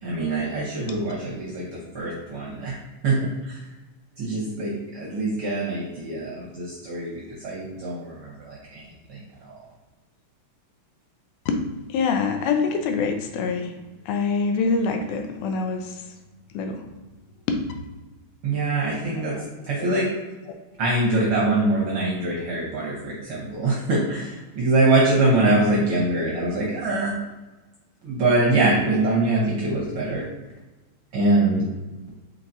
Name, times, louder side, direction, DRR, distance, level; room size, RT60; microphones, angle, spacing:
voice 1, 0.0-2.8 3.0-3.2 3.4-3.6 4.2-8.8 9.1-9.6 18.4-19.4 19.6-20.1 20.8-27.2 28.0-30.2 31.1-31.6, right 2 dB, 65° right, -5 dB, 1.4 m, -23 dB
voice 2, 11.9-13.7 14.1-16.0 16.5-16.8 17.5-17.6 19.4-19.5 19.8-19.9 20.5-20.6, left 4 dB, 85° left, 5 dB, 2.0 m, -25 dB
4.7 x 4.0 x 2.6 m, 1.2 s
omnidirectional pair, 3.5 m